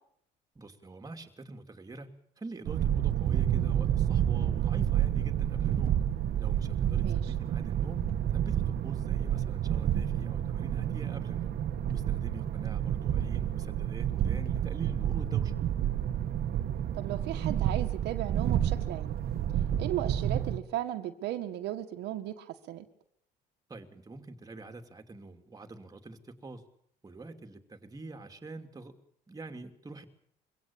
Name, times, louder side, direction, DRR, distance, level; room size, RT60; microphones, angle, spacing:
voice 1, 0.5-2.1 2.4-6.0 6.4-11.6 11.9-15.5 23.7-26.6 27.0-28.9 29.3-30.1, right 2 dB, 20° right, 5 dB, 2.9 m, -45 dB
sound 1, 2.6-20.6, right 10 dB, 65° right, 1.6 m, -29 dB
voice 2, 7.0-7.3 16.9-19.2 19.8-22.9, right 13 dB, 80° right, 7 dB, 1.8 m, -36 dB
23.5 x 17.0 x 8.8 m, 0.68 s
cardioid pair, 110°, 17 cm